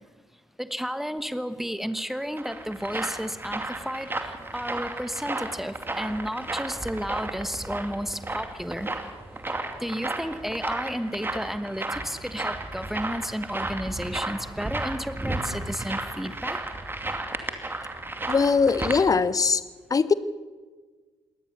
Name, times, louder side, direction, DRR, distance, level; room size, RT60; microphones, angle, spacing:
voice 1, 0.6-8.9 9.8-16.6, equal, ahead, 12 dB, 1.3 m, -32 dB
sound 1, 2.0-19.0, right 2 dB, 20° right, 2.5 m, -33 dB
voice 2, 18.3-19.6 19.9-20.1, left 5 dB, 30° left, 17 dB, 0.9 m, -21 dB
21.0 x 19.0 x 6.8 m, 1.4 s
figure-of-eight pair, 40°, 12 cm